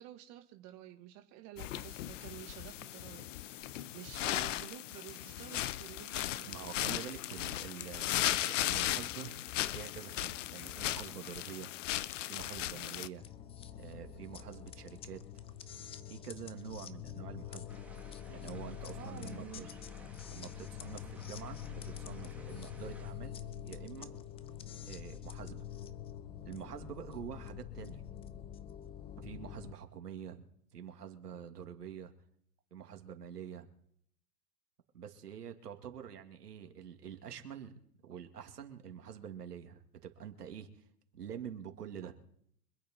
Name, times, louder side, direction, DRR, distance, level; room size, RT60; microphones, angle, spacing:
voice 1, 0.0-3.3 3.9-6.7 18.9-19.8 28.6-28.7, right 13 dB, 35° right, 5 dB, 1.7 m, -50 dB
sound 1, 1.6-13.1, left 14 dB, 50° left, 0.8 m, -37 dB
voice 2, 6.4-9.3 9.6-11.7 12.3-13.2 13.8-15.2 16.0-17.8 18.3-19.7 20.3-24.1 24.9-25.6 26.5-28.0 29.2-32.1 32.7-33.7 34.9-37.7 38.0-40.9 41.1-42.1, right 8 dB, 80° right, 5 dB, 2.4 m, -47 dB
sound 2, 13.2-29.7, left 9 dB, 10° left, 0.6 m, -46 dB
sound 3, 17.7-23.1, right 3 dB, 5° right, 2.2 m, -58 dB
25.5 x 8.7 x 4.4 m, 0.67 s
hypercardioid pair, 120°, 47 cm